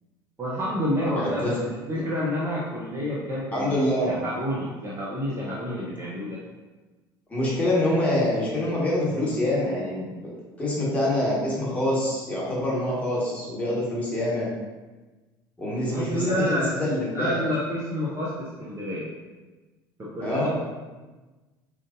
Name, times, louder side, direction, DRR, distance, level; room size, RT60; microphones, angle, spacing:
voice 1, 0.4-3.8 4.0-6.4 15.9-16.7 17.1-19.1 20.0-20.6, equal, 20° right, -6 dB, 0.7 m, -29 dB
voice 2, 1.2-1.6 3.5-4.1 7.3-10.2 10.6-14.5 15.6-17.4 20.2-20.5, left 1 dB, 10° left, -7 dB, 1.4 m, -25 dB
4.9 x 2.6 x 2.5 m, 1.2 s
figure-of-eight pair, 65°, 12 cm